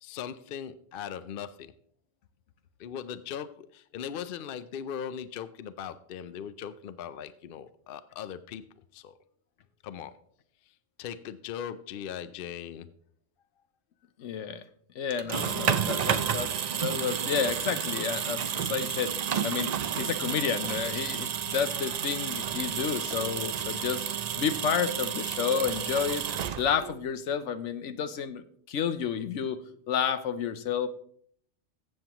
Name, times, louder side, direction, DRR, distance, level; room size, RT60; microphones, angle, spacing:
voice 1, 0.0-1.7 2.8-8.6 8.9-9.2 9.8-10.2 11.0-12.9 15.3-15.8, left 8 dB, 60° left, 14 dB, 0.6 m, -39 dB
voice 2, 14.2-14.6 14.9-24.0 24.4-26.3 26.6-29.6 29.9-30.9, left 7 dB, 75° left, 12 dB, 1.0 m, -31 dB
sound 1, 15.1-27.0, right 8 dB, 65° right, 0.4 m, -31 dB
14.5 x 7.7 x 2.9 m, 0.62 s
omnidirectional pair, 1.3 m